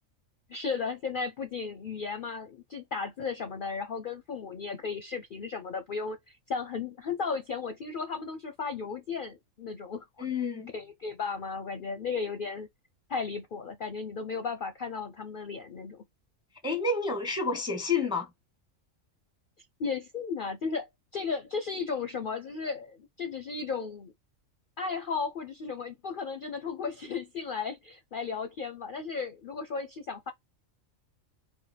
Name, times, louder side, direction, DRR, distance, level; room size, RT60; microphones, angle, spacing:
voice 1, 0.5-10.2 10.7-12.7 13.1-16.0 19.8-20.9 21.1-24.1 24.8-30.3, left 5 dB, 55° left, 0.6 m, -35 dB
voice 2, 10.2-10.7 16.6-18.3, left 4 dB, 5° right, 0.6 m, -29 dB
4.5 x 2.2 x 4.1 m
omnidirectional pair, 1.4 m